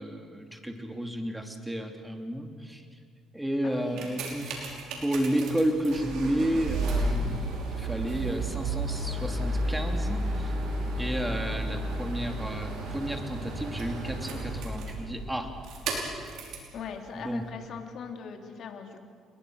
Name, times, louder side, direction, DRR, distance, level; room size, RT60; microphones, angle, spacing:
voice 1, 0.0-2.8 3.3-4.5 5.0-7.4 7.8-10.5 11.0-15.5 17.1-17.4, right 1 dB, 5° right, 3 dB, 2.9 m, -31 dB
voice 2, 3.6-4.1 16.7-19.0, left 6 dB, 60° left, 3 dB, 3.1 m, -40 dB
sound 1, 3.7-16.7 17.5-17.6, right 1 dB, 75° right, 5.7 m, -32 dB
29.5 x 22.0 x 6.5 m, 2.1 s
cardioid pair, 105°, 0 cm